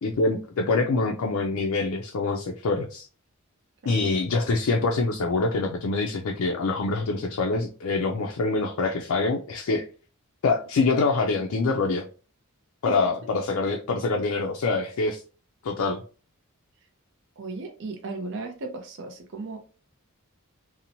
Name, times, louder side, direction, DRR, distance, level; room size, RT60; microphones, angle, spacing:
voice 1, 0.0-3.1 3.9-9.9 10.4-12.0 12.8-15.2 15.6-16.0, left 3 dB, 70° left, 1 dB, 0.4 m, -25 dB
voice 2, 17.4-19.6, right 3 dB, 55° right, 3 dB, 0.5 m, -35 dB
2.9 x 2.0 x 2.6 m, 0.37 s
head